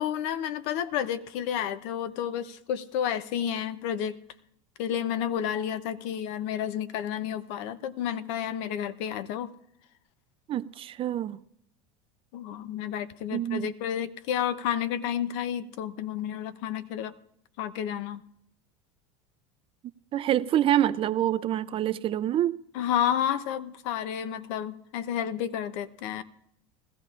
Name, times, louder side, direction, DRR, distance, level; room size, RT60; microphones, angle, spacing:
voice 1, 0.0-4.2 4.8-9.5 12.3-17.1 17.6-18.2 22.7-26.2, left 9 dB, 70° left, 0.7 m, -31 dB
voice 2, 10.5-11.4 13.3-13.7 20.1-22.6, right 12 dB, 35° right, 0.4 m, -26 dB
20.5 x 14.5 x 2.5 m
supercardioid pair, 115°, 16 cm